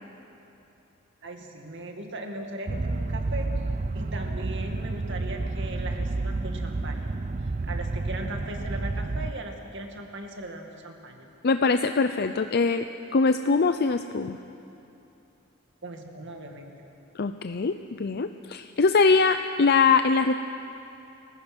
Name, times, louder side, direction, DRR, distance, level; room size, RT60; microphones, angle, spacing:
voice 1, 1.2-3.5 3.9-7.2 7.6-11.3 15.8-16.8, right 1 dB, 60° right, 3 dB, 2.2 m, -38 dB
sound 1, 2.7-9.3, right 2 dB, 35° right, 0.6 m, -30 dB
voice 2, 11.4-12.9 13.1-14.4 17.2-20.3, left 4 dB, 50° left, 9 dB, 0.5 m, -22 dB
30.0 x 15.0 x 6.2 m, 2.8 s
head